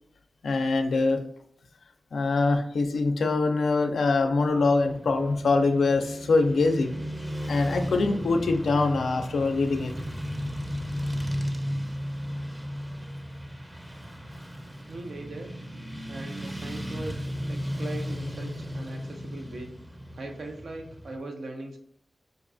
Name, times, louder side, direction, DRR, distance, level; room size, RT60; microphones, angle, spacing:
voice 1, 0.4-1.2 2.1-6.9 7.5-9.9, left 3 dB, 90° left, 6 dB, 0.4 m, -24 dB
Motorcycle / Traffic noise roadway noise, 4.5-21.2, equal, 15° right, 0.5 m, -35 dB
voice 2, 14.9-15.5 16.1-19.7 20.1-21.8, right 2 dB, 85° right, 3 dB, 0.6 m, -39 dB
5.1 x 2.3 x 2.5 m, 0.65 s
cardioid pair, 45°, 0 cm